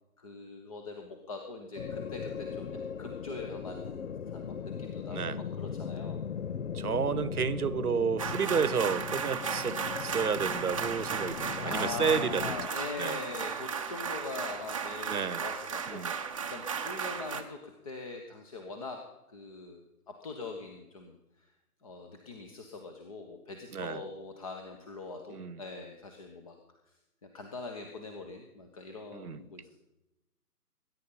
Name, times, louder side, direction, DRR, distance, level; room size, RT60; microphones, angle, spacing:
voice 1, 0.2-6.2 11.6-19.0 19.3-21.5 21.8-26.6 27.2-29.7, left 3 dB, 20° left, 4 dB, 1.2 m, -42 dB
sound 1, 1.8-12.7, left 7 dB, 55° left, 0.6 m, -38 dB
voice 2, 6.7-12.4 13.0-13.2 15.1-15.4 15.9-16.1 23.7-24.0 25.3-25.6 29.1-29.4, right 6 dB, 65° right, 17 dB, 1.1 m, -31 dB
sound 2, 8.2-17.4, right 6 dB, 20° right, 0.9 m, -35 dB
21.0 x 10.5 x 5.6 m, 0.94 s
figure-of-eight pair, 155°, 48 cm